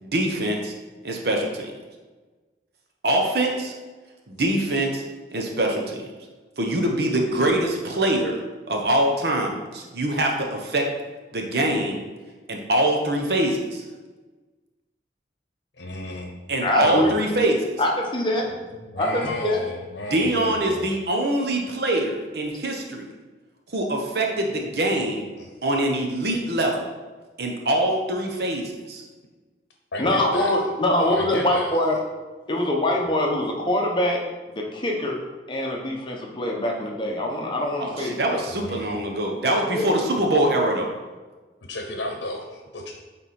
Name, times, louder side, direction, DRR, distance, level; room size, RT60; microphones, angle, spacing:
voice 1, 0.0-0.7 1.0-1.7 3.0-3.7 4.3-5.0 5.3-6.1 6.6-8.4 8.7-10.9 11.3-12.0 12.5-13.8 16.5-17.6 20.1-23.1 23.7-25.2 25.6-26.9 27.4-29.0 37.8-40.9, right 1 dB, 65° right, 1 dB, 0.9 m, -24 dB
voice 2, 15.8-16.3 16.8-17.2 18.5-20.9 25.4-25.5 29.9-30.6 31.1-31.7 38.5-38.9 41.7-42.9, left 1 dB, 80° left, 2 dB, 0.9 m, -33 dB
voice 3, 16.6-17.1 17.8-18.4 19.0-19.6 30.0-32.0 32.5-34.2 34.5-35.2 35.5-38.4 39.7-39.8, left 1 dB, 25° left, 0 dB, 1.0 m, -24 dB
9.2 x 3.5 x 4.2 m, 1.3 s
head